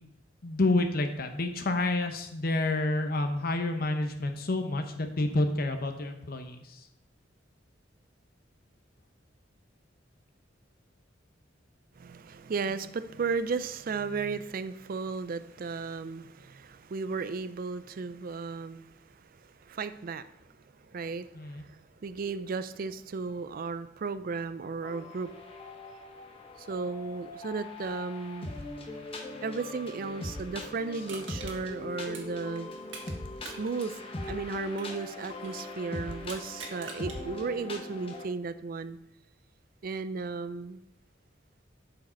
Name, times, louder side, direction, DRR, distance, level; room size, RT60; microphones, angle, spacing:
voice 1, 0.4-6.9 21.3-21.6, left 2 dB, 50° left, 6 dB, 0.8 m, -29 dB
voice 2, 12.0-20.5 20.8-25.3 26.6-28.5 29.4-32.7 33.4-34.0 34.3-39.0 39.8-40.8, right 4 dB, 50° right, 13 dB, 0.4 m, -35 dB
sound 1, 24.8-38.3, left 2 dB, 30° left, 1.0 m, -41 dB
Crushing, 31.1-33.2 33.4-35.6 36.2-37.2 37.7-37.8, right 4 dB, 75° right, 1.7 m, -45 dB
11.5 x 4.9 x 4.4 m, 0.81 s
head